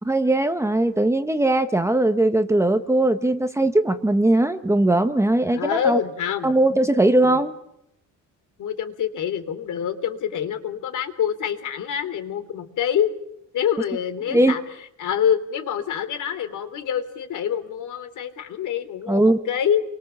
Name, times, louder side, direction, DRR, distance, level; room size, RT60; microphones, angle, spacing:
voice 1, 0.0-6.0 6.4-7.5 14.3-14.5 19.1-19.4, right 1 dB, 10° right, 8 dB, 1.2 m, -19 dB
voice 2, 5.5-6.5 7.2-7.4 8.6-13.1 13.5-14.6 15.0-19.8, left 8 dB, 65° left, 9 dB, 3.4 m, -26 dB
30.0 x 23.5 x 7.3 m, 0.80 s
cardioid pair, 155°, 33 cm